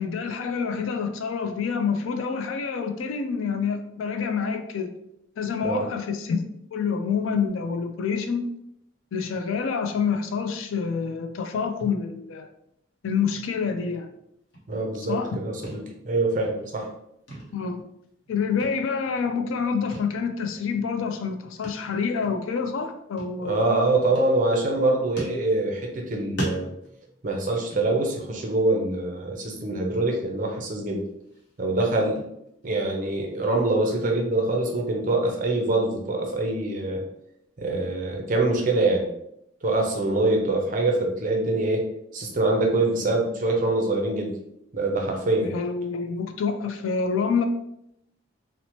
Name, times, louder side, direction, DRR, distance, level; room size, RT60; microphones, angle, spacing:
voice 1, 0.0-4.9 5.4-6.4 6.7-8.4 9.1-12.5 13.0-14.1 15.0-15.3 17.5-17.8 18.3-23.6 45.4-47.5, left 5 dB, 90° left, 7 dB, 0.4 m, -27 dB
sound 1, 14.5-15.3 15.6-16.1 16.3-17.0 17.3-18.3 18.6-19.3 19.9-20.2 20.5-20.6 21.6-21.9 22.2-22.3 23.2-23.8 24.1-24.8 25.2-26.0 26.4-28.4 28.7-29.0 29.4-29.5 30.0-30.7 31.1-33.6, right 1 dB, 55° left, 0.8 m, -40 dB
voice 2, 14.7-16.9 23.4-26.7 27.2-31.0 31.6-32.2 32.6-37.0 37.6-39.1 39.6-41.9 42.1-44.3 44.7-45.5, right 2 dB, 40° right, 1 dB, 0.5 m, -24 dB
2.8 x 2.1 x 2.9 m, 0.78 s
head